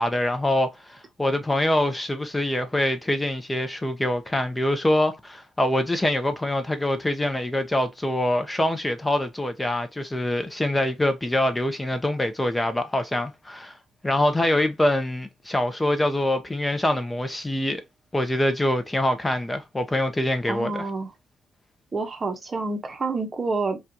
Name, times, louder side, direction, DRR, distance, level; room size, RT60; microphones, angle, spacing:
voice 1, 0.0-13.8 14.0-17.8 18.1-20.8, left 1 dB, 15° left, 0.6 m, -24 dB
voice 2, 20.5-21.1 21.9-23.8, right 3 dB, 30° right, 0.8 m, -28 dB
4.2 x 2.3 x 2.7 m
cardioid pair, 90°, 0 cm